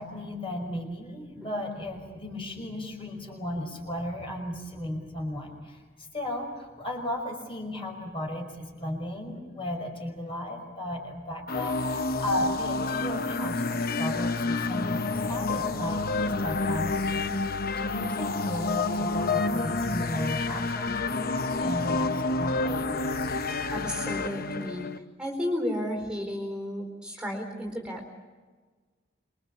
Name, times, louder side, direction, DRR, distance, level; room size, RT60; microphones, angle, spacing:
voice 1, 0.0-17.2 17.8-23.4, left 1 dB, 25° left, 2 dB, 5.5 m, -36 dB
sound 1, 11.5-25.0, left 3 dB, 45° left, 0.9 m, -29 dB
voice 2, 23.7-24.9 25.2-28.2, equal, 5° right, 2 dB, 4.2 m, -33 dB
27.0 x 23.0 x 7.3 m, 1.4 s
head